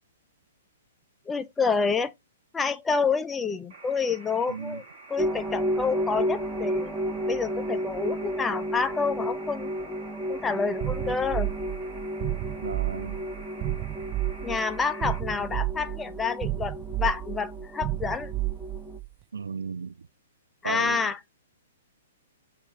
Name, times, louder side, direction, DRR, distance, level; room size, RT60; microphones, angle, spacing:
voice 1, 1.3-2.1 2.5-4.8 5.1-6.9 7.3-9.7 10.3-11.5 14.4-18.3 20.6-21.2, left 5 dB, 10° left, 0.7 m, -28 dB
sound 1, 3.7-15.2, right 3 dB, 50° right, 3.2 m, -48 dB
voice 2, 4.5-4.8 12.6-13.3 19.3-20.1 20.6-21.1, right 6 dB, 75° right, 0.4 m, -35 dB
sound 2, 5.2-19.0, equal, 5° right, 1.1 m, -33 dB
sound 3, 10.8-19.1, right 18 dB, 30° right, 0.6 m, -32 dB
7.0 x 2.7 x 5.8 m
figure-of-eight pair, 120°, 0 cm